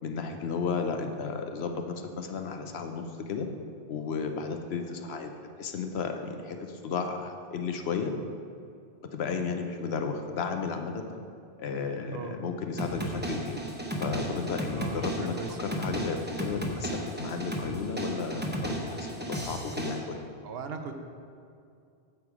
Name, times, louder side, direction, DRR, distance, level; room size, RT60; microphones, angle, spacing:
voice 1, 0.0-3.5 3.9-5.3 5.6-8.1 9.1-11.1 11.6-13.6 14.0-20.2, left 5 dB, 75° left, 6 dB, 1.0 m, -33 dB
voice 2, 12.1-12.4 14.8-15.8 20.4-20.9, right 5 dB, 70° right, 6 dB, 0.9 m, -39 dB
sound 1, 12.8-20.0, right 1 dB, 10° right, 0.9 m, -34 dB
7.9 x 7.1 x 4.8 m, 2.4 s
omnidirectional pair, 1.1 m